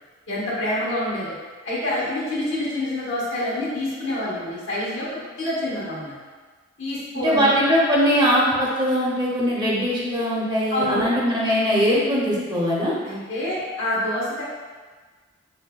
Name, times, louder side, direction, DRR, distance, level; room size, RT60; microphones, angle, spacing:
voice 1, 0.3-1.3 1.6-6.1 6.8-7.5 10.7-11.1 13.1-14.4, left 1 dB, 90° left, -7 dB, 1.1 m, -27 dB
voice 2, 7.2-12.9, equal, 25° right, -5 dB, 0.6 m, -21 dB
4.7 x 2.1 x 2.2 m, 1.4 s
head